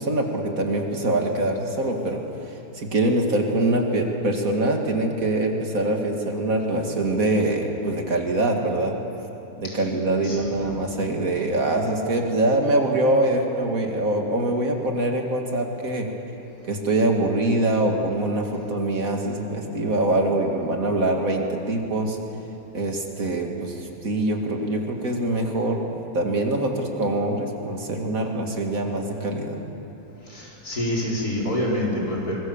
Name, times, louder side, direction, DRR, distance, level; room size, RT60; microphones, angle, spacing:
voice 1, 0.0-9.0 9.6-16.1 16.7-22.2 22.7-29.6, right 2 dB, 60° right, 2 dB, 2.5 m, -24 dB
voice 2, 30.3-32.4, left 1 dB, 70° left, -4 dB, 5.1 m, -26 dB
24.0 x 22.5 x 7.2 m, 2.9 s
omnidirectional pair, 1.7 m